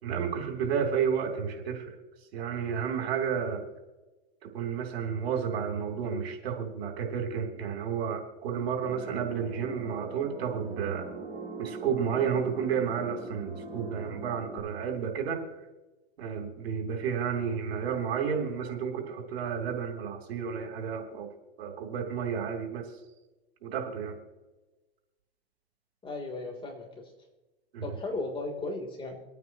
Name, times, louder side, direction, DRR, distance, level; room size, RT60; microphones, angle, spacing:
voice 1, 0.0-2.0 2.3-3.6 4.4-11.1 11.6-15.4 16.2-21.3 21.6-22.9 23.6-24.2 27.7-27.9, right 7 dB, 75° right, 2 dB, 3.3 m, -31 dB
sound 1, 8.8-14.6, right 3 dB, 25° right, 3.1 m, -43 dB
voice 2, 26.0-27.1 27.8-29.2, left 2 dB, 15° left, 1 dB, 3.4 m, -36 dB
26.5 x 9.3 x 3.0 m, 1.1 s
hypercardioid pair, 125°, 31 cm